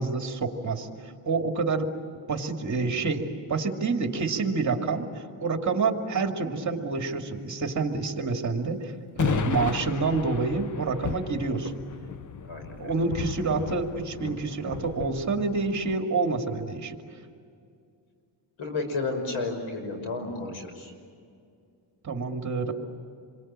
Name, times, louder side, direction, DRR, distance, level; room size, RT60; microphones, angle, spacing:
voice 1, 0.0-1.9 2.3-11.7 12.8-17.0 22.0-22.7, right 4 dB, 40° right, 4 dB, 2.5 m, -28 dB
sound 1, 9.2-16.0, left 6 dB, 40° left, 0.8 m, -34 dB
voice 2, 12.4-13.0 18.6-20.9, left 3 dB, 80° left, 5 dB, 6.1 m, -32 dB
28.0 x 23.5 x 8.9 m, 2.3 s
cardioid pair, 135°, 47 cm